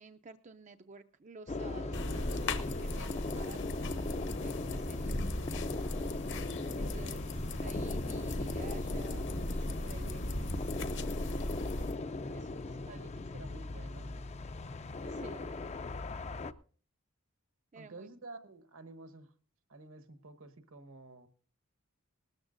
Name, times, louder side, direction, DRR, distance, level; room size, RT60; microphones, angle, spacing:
voice 1, 0.0-5.2 6.7-9.3 9.6-10.7 12.3-13.2 15.1-15.5 17.7-18.1, right 4 dB, 35° right, 0.5 m, -52 dB
sound 1, 1.5-16.5, left 2 dB, 30° left, 0.5 m, -39 dB
sound 2, 1.9-11.9, left 1 dB, 55° left, 1.0 m, -37 dB
voice 2, 12.7-14.1 15.0-16.4 17.7-19.3 19.7-21.3, right 3 dB, 70° right, 1.2 m, -52 dB
19.5 x 13.5 x 2.5 m
head